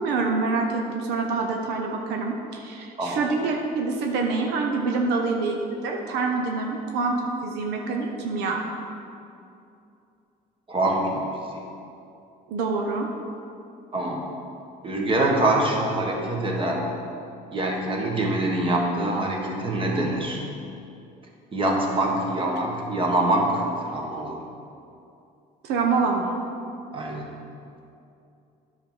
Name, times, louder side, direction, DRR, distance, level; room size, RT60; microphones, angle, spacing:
voice 1, 0.0-8.6 12.5-13.1 25.6-26.4, right 4 dB, 85° right, 1 dB, 0.9 m, -26 dB
voice 2, 3.0-3.3 10.7-11.6 13.9-14.2 14.8-16.8 17.5-20.4 21.5-24.4 26.9-27.3, right 1 dB, 30° right, -1 dB, 1.5 m, -25 dB
9.7 x 4.2 x 6.3 m, 2.6 s
cardioid pair, 110°, 17 cm